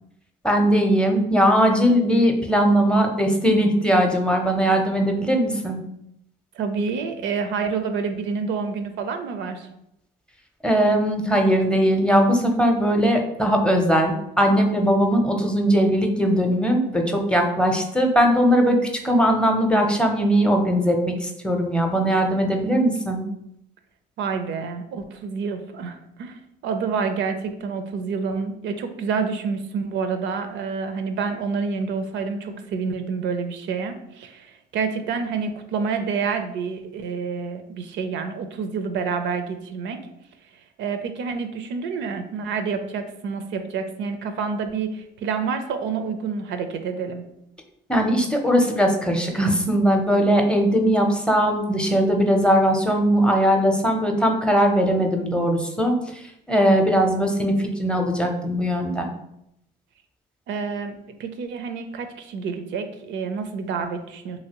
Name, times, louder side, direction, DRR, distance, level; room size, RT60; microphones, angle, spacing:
voice 1, 0.4-5.8 10.6-23.2 47.9-59.1, equal, 5° left, 2 dB, 0.6 m, -20 dB
voice 2, 6.5-9.7 24.2-40.1 40.8-47.2 60.5-64.4, right 5 dB, 60° right, 7 dB, 0.5 m, -28 dB
2.8 x 2.7 x 2.9 m, 0.79 s
hypercardioid pair, 65°, 21 cm